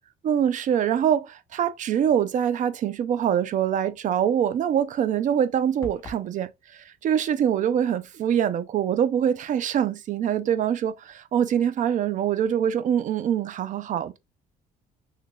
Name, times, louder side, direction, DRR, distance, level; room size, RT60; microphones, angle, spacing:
voice 1, 0.2-14.2, right 9 dB, 50° right, 0.5 m, -24 dB
sound 1, 5.8-6.3, left 2 dB, 20° left, 0.8 m, -39 dB
3.2 x 2.4 x 3.8 m
cardioid pair, 110°, 17 cm